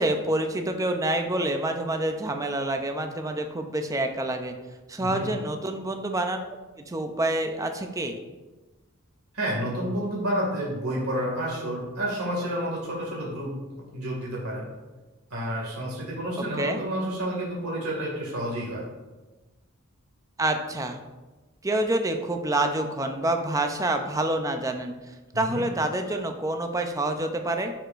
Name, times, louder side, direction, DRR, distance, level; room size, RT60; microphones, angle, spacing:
voice 1, 0.0-4.5 4.9-6.4 6.9-8.2 16.4-16.8 20.4-21.0 21.6-24.9 25.4-27.7, right 1 dB, 15° right, 5 dB, 0.5 m, -27 dB
voice 2, 9.3-13.5 13.9-14.6 15.3-18.8 25.3-25.7, equal, 90° right, -4 dB, 2.2 m, -30 dB
11.0 x 4.8 x 2.5 m, 1.2 s
head